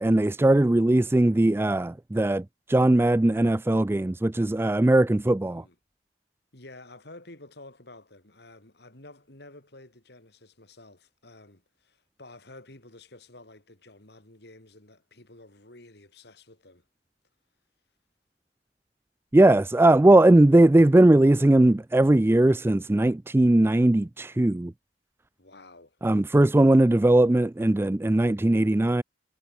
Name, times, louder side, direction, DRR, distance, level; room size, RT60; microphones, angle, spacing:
voice 1, 0.0-5.6 19.3-24.7 26.0-29.0, right 1 dB, 15° right, 0.3 m, -19 dB
voice 2, 5.4-5.8 6.5-16.9 25.4-26.0, left 2 dB, 60° left, 3.7 m, -50 dB
head